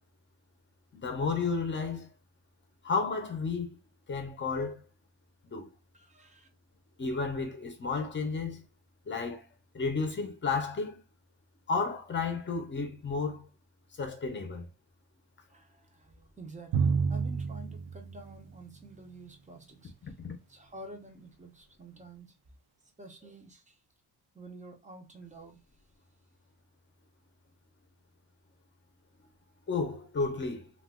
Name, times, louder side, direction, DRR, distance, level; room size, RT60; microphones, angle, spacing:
voice 1, 1.0-2.1 2.8-3.7 4.1-4.8 5.4-5.7 7.0-8.6 9.1-9.4 9.7-11.0 11.7-13.5 14.0-14.7 20.0-20.4 29.7-30.7, left 4 dB, 30° left, 0.7 m, -32 dB
voice 2, 5.9-6.5 15.5-19.9 20.5-22.3 23.0-23.7 24.3-25.6, right 2 dB, 20° right, 0.6 m, -49 dB
Drum, 16.7-19.1, right 5 dB, 70° right, 0.6 m, -31 dB
2.4 x 2.4 x 3.6 m
wide cardioid pair, 175°, 40 cm